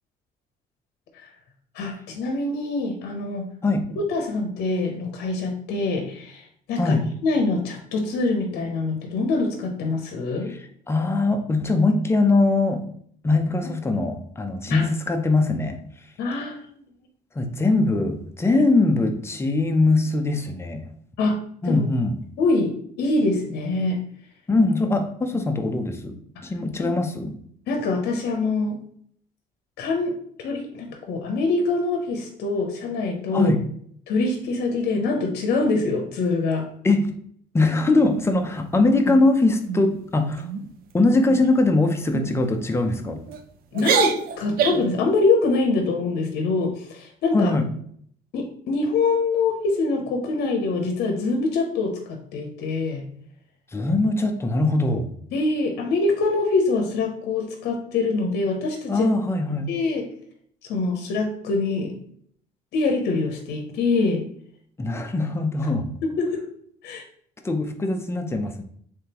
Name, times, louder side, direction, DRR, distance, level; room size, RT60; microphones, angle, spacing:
voice 1, 1.7-3.5 4.1-6.9 7.2-10.5 14.7-14.8 16.2-16.6 18.5-18.6 21.2-21.8 22.4-24.0 26.8-26.9 27.7-28.8 29.8-30.1 30.4-33.5 34.1-36.7 43.7-47.5 48.3-53.0 55.3-59.1 59.7-60.1 60.7-61.9 62.7-64.2 66.0-66.4 66.8-67.0, left 3 dB, 75° left, 3 dB, 0.7 m, -24 dB
voice 2, 10.5-12.8 13.2-15.8 17.4-20.9 21.6-22.2 24.5-27.4 33.3-33.6 36.8-37.1 37.5-40.5 40.9-43.2 47.3-47.7 53.7-55.1 58.9-59.7 64.8-65.9 67.4-68.6, left 2 dB, 15° left, 5 dB, 0.5 m, -21 dB
sound 1, 38.0-38.6 39.0-39.3 39.7-39.9 40.3-40.7 41.3-41.6 42.1-42.3 43.0-43.4 43.7-45.0, right 7 dB, 60° right, 0.5 m, -26 dB
3.5 x 3.3 x 2.9 m, 0.63 s
cardioid pair, 110°, 17 cm